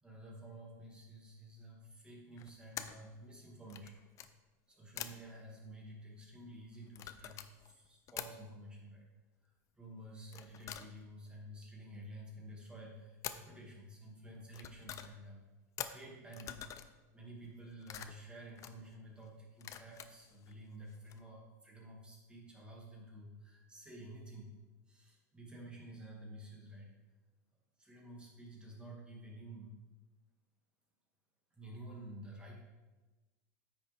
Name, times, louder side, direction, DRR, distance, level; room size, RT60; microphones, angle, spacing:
voice 1, 0.0-4.0 4.7-9.1 9.4-15.5 15.9-16.7 17.1-24.5 24.9-26.9 27.8-29.7 31.5-32.6, right 1 dB, 10° right, -3 dB, 2.3 m, -51 dB
sound 1, 2.4-3.1 3.6-4.3 5.0-5.3 6.8-8.3 10.3-11.3 13.2-13.5 14.3-15.2 15.8-17.0 17.4-18.9 19.6-20.5 20.9-21.2, left 10 dB, 35° left, 0.5 m, -46 dB
9.4 x 6.3 x 3.6 m, 1.2 s
supercardioid pair, 125°, 9 cm